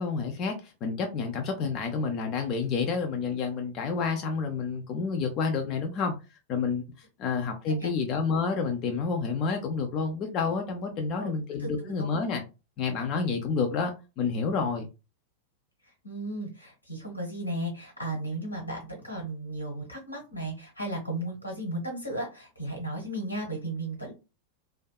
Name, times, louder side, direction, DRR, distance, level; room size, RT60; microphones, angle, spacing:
voice 1, 0.0-6.2 6.5-12.4 12.8-14.9, left 5 dB, 35° left, 0.4 m, -29 dB
voice 2, 11.6-12.1 15.8-24.1, right 1 dB, 85° left, 1.2 m, -35 dB
2.6 x 2.2 x 2.3 m
figure-of-eight pair, 90°, 0 cm